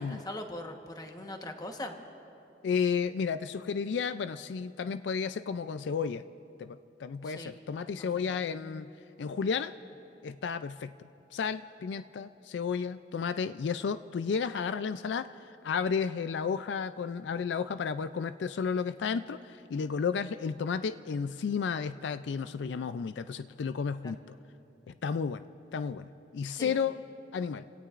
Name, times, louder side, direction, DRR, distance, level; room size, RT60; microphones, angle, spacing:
voice 1, 0.0-1.9 7.2-7.6 8.0-8.4 22.4-22.8 24.0-24.1 26.5-26.8, left 1 dB, 20° left, 4 dB, 1.1 m, -42 dB
voice 2, 2.6-6.2 6.6-8.9 9.2-9.7 10.2-10.9 11.3-15.3 15.6-24.2 25.0-25.4 25.7-27.0 27.3-27.7, left 6 dB, 80° left, 12 dB, 0.4 m, -32 dB
29.5 x 17.5 x 2.5 m, 2.9 s
head